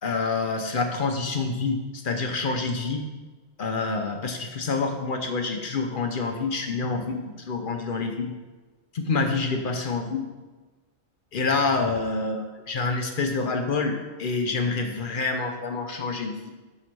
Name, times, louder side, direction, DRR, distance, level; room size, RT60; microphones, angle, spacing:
voice 1, 0.0-3.1 3.6-8.3 8.9-10.3 11.3-16.5, left 4 dB, 50° left, 4 dB, 0.7 m, -27 dB
6.3 x 3.9 x 5.9 m, 1.2 s
omnidirectional pair, 1.4 m